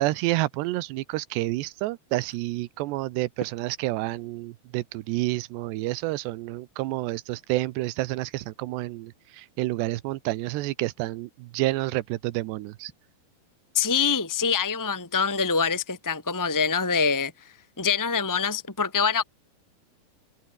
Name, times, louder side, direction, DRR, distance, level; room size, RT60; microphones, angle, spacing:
voice 1, 0.0-12.9, right 18 dB, 90° right, 3.0 m, -29 dB
voice 2, 13.7-17.3 17.8-19.2, left 5 dB, 15° left, 0.7 m, -25 dB
open air
omnidirectional pair, 4.8 m